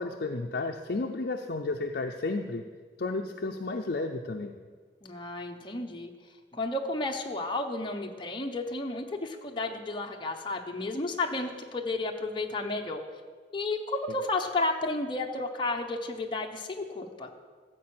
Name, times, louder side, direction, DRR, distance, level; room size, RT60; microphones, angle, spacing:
voice 1, 0.0-2.6 3.0-4.5, left 3 dB, 60° left, 3 dB, 0.5 m, -32 dB
voice 2, 5.0-6.1 6.5-13.0 13.5-17.3, left 2 dB, 30° left, 2 dB, 0.8 m, -32 dB
14.0 x 4.7 x 7.7 m, 1.6 s
head